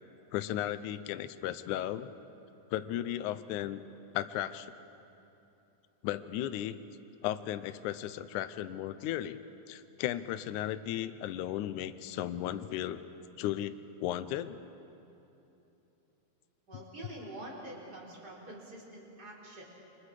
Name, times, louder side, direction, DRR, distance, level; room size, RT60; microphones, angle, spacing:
voice 1, 0.3-2.1 2.7-3.8 4.1-4.7 6.0-6.8 7.2-9.4 9.7-13.0 13.4-14.6, left 12 dB, 85° left, 11 dB, 1.7 m, -35 dB
voice 2, 16.7-19.6, right 1 dB, 25° right, -3 dB, 4.3 m, -46 dB
29.0 x 25.0 x 4.9 m, 3.0 s
omnidirectional pair, 4.4 m